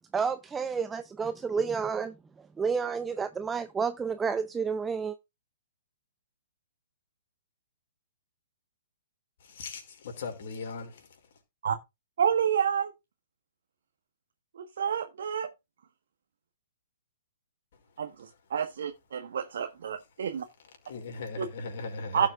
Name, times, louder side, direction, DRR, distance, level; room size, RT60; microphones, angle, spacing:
voice 1, 0.1-2.1 2.6-5.1, right 5 dB, 10° right, 0.6 m, -30 dB
voice 2, 9.4-11.2 20.8-22.3, left 3 dB, 50° left, 5.0 m, -38 dB
voice 3, 12.2-12.9 14.5-15.5 18.0-20.5 21.4-21.5 22.1-22.3, right 8 dB, 55° right, 1.4 m, -29 dB
17.0 x 7.4 x 2.5 m
figure-of-eight pair, 120°, 0 cm